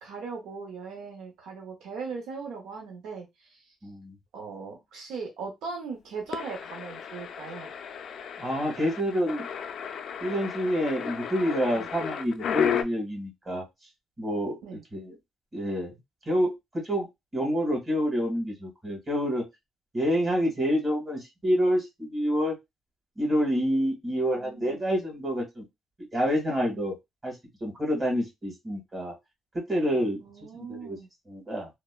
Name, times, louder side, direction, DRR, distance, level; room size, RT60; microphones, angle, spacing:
voice 1, 0.0-3.7 4.3-7.7 11.7-11.9 14.6-14.8 24.3-24.8 30.2-31.1, right 4 dB, 85° right, 1 dB, 0.7 m, -39 dB
voice 2, 3.8-4.1 8.4-9.5 10.2-13.6 14.2-15.1 15.5-16.0 16.3-19.4 19.9-22.5 23.2-25.6 26.1-26.9 27.2-29.1 29.5-30.2 30.5-31.0 31.3-31.7, equal, 25° right, -1 dB, 1.6 m, -28 dB
sound 1, 6.3-12.8, left 7 dB, 65° left, 0.3 m, -33 dB
3.0 x 2.0 x 2.3 m, 0.19 s
cardioid pair, 90°, 0 cm